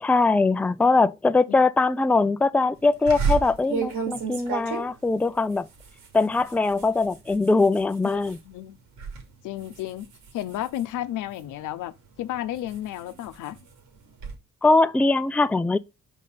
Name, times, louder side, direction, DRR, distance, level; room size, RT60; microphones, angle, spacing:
voice 1, 0.0-5.7 6.1-8.4 14.6-15.8, left 3 dB, 5° left, 0.4 m, -21 dB
sound 1, 3.1-8.4 8.8-9.2 9.6-11.6 12.2-14.3, right 6 dB, 85° right, 2.8 m, -32 dB
voice 2, 8.0-8.8 9.4-10.1 10.3-11.9 12.2-13.6, left 13 dB, 85° left, 0.8 m, -32 dB
5.4 x 5.4 x 6.6 m
cardioid pair, 90°, 30 cm